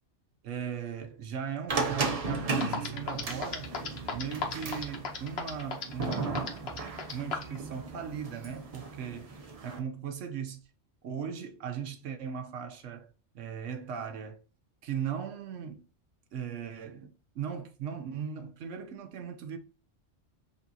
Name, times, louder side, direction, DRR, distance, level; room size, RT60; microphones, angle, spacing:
voice 1, 0.4-3.7 4.1-9.4 9.6-10.6 11.0-14.4 14.8-15.9 16.3-19.6, right 7 dB, 80° right, 1.1 m, -38 dB
sound 1, 1.7-9.8, right 4 dB, 35° right, 0.7 m, -35 dB
sound 2, 2.3-2.4 2.6-7.6, left 5 dB, 60° left, 1.1 m, -34 dB
5.4 x 2.6 x 2.7 m
omnidirectional pair, 1.3 m